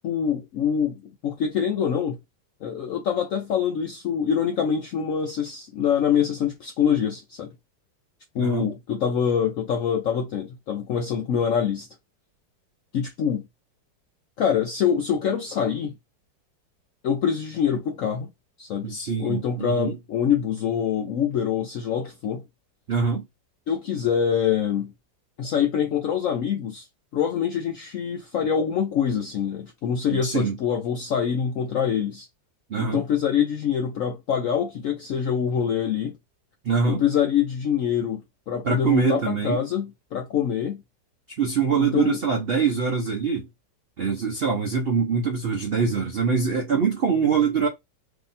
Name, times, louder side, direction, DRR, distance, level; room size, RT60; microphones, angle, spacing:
voice 1, 0.0-2.2 2.6-7.5 8.3-11.9 12.9-13.4 14.4-15.9 17.0-18.3 18.6-18.9 19.2-22.4 23.7-24.9 25.4-26.8 27.1-32.3 32.8-36.1 36.9-38.2 38.5-40.8 41.8-42.2, left 8 dB, 75° left, 0.7 m, -25 dB
voice 2, 8.4-8.7 18.8-20.0 22.9-23.3 30.1-30.6 32.7-33.0 36.6-37.0 38.6-39.6 41.4-43.5 44.0-47.7, right 5 dB, 70° right, 0.5 m, -24 dB
2.8 x 2.8 x 4.0 m
omnidirectional pair, 1.9 m